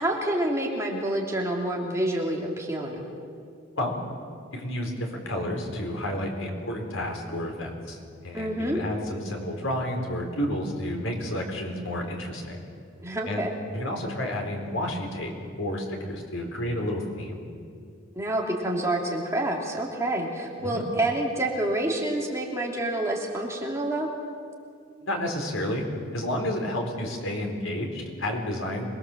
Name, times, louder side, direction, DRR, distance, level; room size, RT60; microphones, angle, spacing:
voice 1, 0.0-3.1 8.3-8.8 13.0-13.5 18.1-24.1, right 1 dB, 15° right, -1 dB, 2.9 m, -28 dB
voice 2, 4.5-12.6 13.3-17.4 20.6-20.8 25.0-25.9 26.1-28.9, left 1 dB, 85° left, 2 dB, 4.4 m, -31 dB
26.5 x 21.5 x 7.5 m, 2.3 s
head